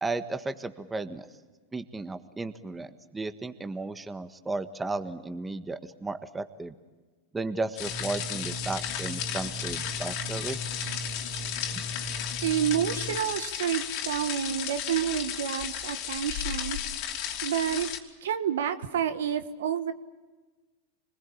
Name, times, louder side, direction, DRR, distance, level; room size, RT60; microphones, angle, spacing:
voice 1, 0.0-1.3 1.7-6.7 7.3-10.7, right 3 dB, 15° right, 10 dB, 1.5 m, -34 dB
sound 1, 7.8-13.2, right 1 dB, 80° left, 3.1 m, -39 dB
sound 2, 7.8-18.0, left 9 dB, 55° left, 3.0 m, -34 dB
voice 2, 12.4-16.8 17.4-17.9 18.2-19.9, right 9 dB, 75° right, 11 dB, 1.4 m, -29 dB
26.0 x 20.5 x 8.7 m, 1.3 s
hypercardioid pair, 105°, 0 cm